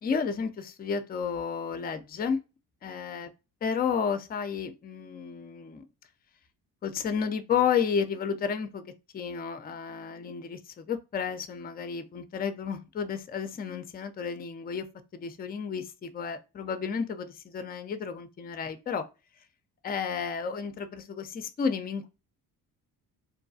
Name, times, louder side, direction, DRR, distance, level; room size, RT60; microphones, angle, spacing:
voice 1, 0.0-2.4 2.8-3.3 3.6-5.8 6.8-8.9 9.1-14.9 15.1-19.0 19.8-22.1, left 6 dB, 20° left, 0.4 m, -32 dB
2.7 x 2.3 x 2.6 m
supercardioid pair, 60°, 45 cm